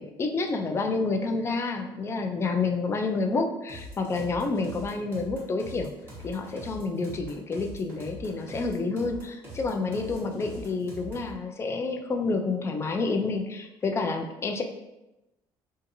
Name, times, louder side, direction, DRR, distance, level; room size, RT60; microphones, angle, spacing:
voice 1, 0.0-5.9 6.2-14.6, left 3 dB, 25° left, 4 dB, 0.3 m, -29 dB
sound 1, 3.7-11.4, equal, 25° right, 1.2 m, -43 dB
2.7 x 2.4 x 2.5 m, 0.96 s
cardioid pair, 105°, 10 cm